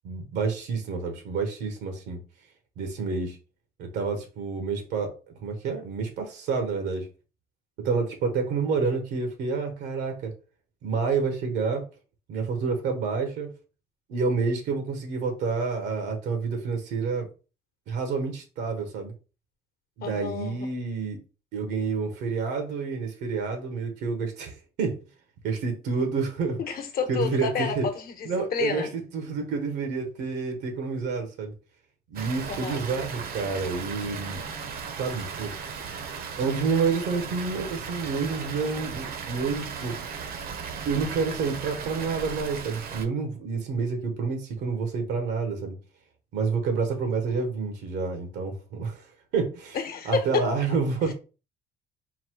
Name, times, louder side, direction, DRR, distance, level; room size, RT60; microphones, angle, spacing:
voice 1, 0.0-2.2 2.8-3.4 3.8-5.1 5.4-7.1 7.8-10.3 10.8-11.8 12.3-13.5 14.1-17.3 17.9-19.1 20.0-21.2 21.5-25.0 25.4-26.6 27.1-27.9 28.2-31.5 32.1-34.4 34.9-35.5 36.4-40.0 40.8-45.7 46.3-49.0 49.3-49.8 50.0-51.1, right 4 dB, 85° right, 1.1 m, -28 dB
voice 2, 20.0-20.7 26.6-28.9 32.5-32.8 49.7-50.5, left 6 dB, 60° left, 1.0 m, -30 dB
Water, 32.2-43.1, right 6 dB, 60° right, 0.8 m, -36 dB
4.0 x 2.2 x 4.5 m
cardioid pair, 110°, 17 cm